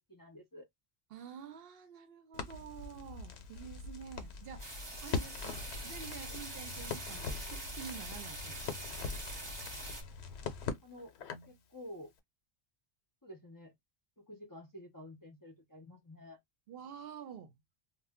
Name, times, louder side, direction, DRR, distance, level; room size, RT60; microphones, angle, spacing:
voice 1, 0.1-0.7 10.4-10.5 10.8-11.1 11.5-12.1 13.2-13.7 14.2-16.4, left 1 dB, 25° left, 0.5 m, -50 dB
voice 2, 1.1-4.6 5.0-8.7 16.7-17.5, right 7 dB, 65° right, 0.7 m, -48 dB
Crackle, 2.3-11.6, left 5 dB, 80° left, 0.9 m, -42 dB
sound 1, 4.6-10.0, right 2 dB, 25° right, 0.8 m, -44 dB
2.1 x 2.1 x 3.4 m
omnidirectional pair, 1.1 m